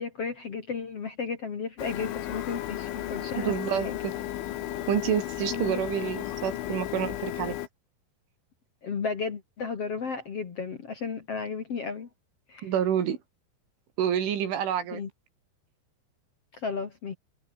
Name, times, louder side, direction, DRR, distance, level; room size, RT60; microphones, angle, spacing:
voice 1, 0.0-3.5 3.8-4.0 5.5-5.8 8.8-12.1 12.5-12.7 14.9-15.1 16.5-17.1, left 5 dB, 45° left, 2.2 m, -34 dB
Printer, 1.8-7.7, left 13 dB, 85° left, 4.1 m, -34 dB
voice 2, 3.4-4.1 4.9-7.6 12.6-13.2 14.0-15.0, right 9 dB, 85° right, 5.6 m, -28 dB
omnidirectional pair, 5.4 m